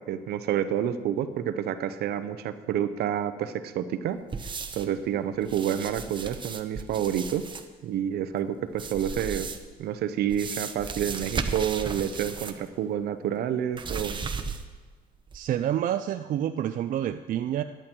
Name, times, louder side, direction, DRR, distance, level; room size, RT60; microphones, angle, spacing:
voice 1, 0.0-4.2 4.7-7.5 7.8-9.5 9.8-14.2, right 9 dB, 70° right, 11 dB, 0.8 m, -29 dB
sound 1, 4.3-5.0 5.4-7.7 8.7-9.8 10.3-12.7 12.9-13.0 13.7-14.8 15.3-15.4, right 5 dB, 30° right, 0.9 m, -35 dB
voice 2, 15.3-17.6, right 11 dB, 55° right, 9 dB, 0.4 m, -28 dB
14.0 x 10.5 x 4.6 m, 1.4 s
cardioid pair, 110°, 17 cm